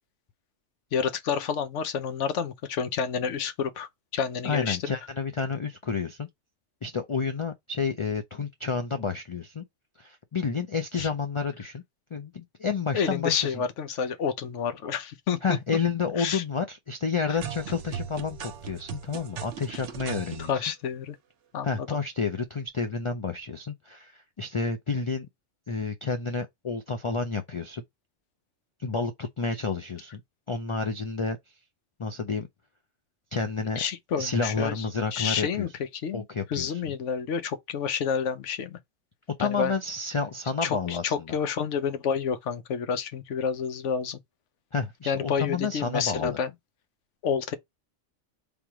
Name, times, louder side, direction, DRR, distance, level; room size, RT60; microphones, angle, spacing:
voice 1, 0.9-4.8 11.0-11.1 12.9-15.4 16.2-16.4 17.3-17.4 19.7-19.8 20.4-21.2 21.5-21.9 33.8-34.8 35.1-35.7 36.0-36.2 36.5-38.8 39.4-39.7 40.6-44.2 45.1-46.5 47.2-47.6, left 7 dB, 75° left, 1.0 m, -29 dB
voice 2, 4.4-6.3 6.8-9.6 10.0-11.8 12.1-13.6 15.4-20.6 21.6-25.3 25.7-27.8 28.8-30.2 30.5-31.4 32.0-32.5 33.3-33.8 34.2-35.7 36.1-36.8 39.4-41.3 44.7-46.4, left 5 dB, 55° left, 0.3 m, -30 dB
sound 1, 17.4-20.5, right 8 dB, 75° right, 1.0 m, -38 dB
3.5 x 2.9 x 4.7 m
omnidirectional pair, 1.2 m